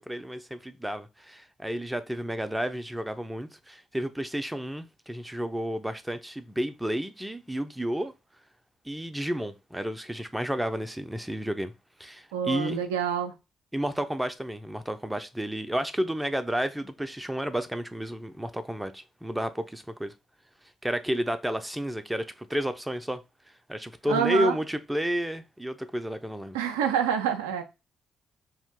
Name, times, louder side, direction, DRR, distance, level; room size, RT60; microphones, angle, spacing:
voice 1, 0.1-8.1 8.9-11.7 12.0-12.8 13.7-20.1 20.8-23.2 23.7-26.6, equal, 5° right, 0.5 m, -31 dB
voice 2, 12.3-13.3 24.1-24.6 26.5-27.6, right 8 dB, 75° right, 0.3 m, -27 dB
2.8 x 2.5 x 3.6 m
figure-of-eight pair, 40°, 0 cm